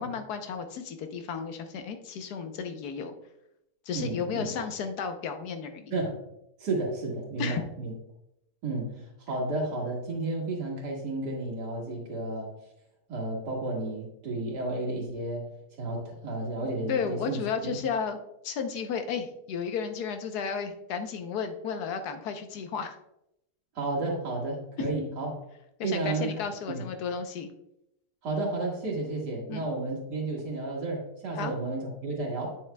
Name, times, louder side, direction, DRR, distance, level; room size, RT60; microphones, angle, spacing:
voice 1, 0.0-3.1 3.9-5.9 7.4-7.6 16.9-18.2 18.4-23.0 24.8-24.9 25.8-27.5 29.5-29.7 31.3-31.5, left 6 dB, 75° left, 7 dB, 1.3 m, -33 dB
voice 2, 3.9-4.5 5.9-6.2 6.6-7.9 8.6-9.0 9.3-12.5 13.1-15.5 15.7-17.8 23.8-25.3 25.8-26.3 26.7-26.8 28.2-32.6, right 2 dB, 90° right, -1 dB, 2.4 m, -32 dB
8.8 x 7.5 x 2.2 m, 0.83 s
omnidirectional pair, 1.7 m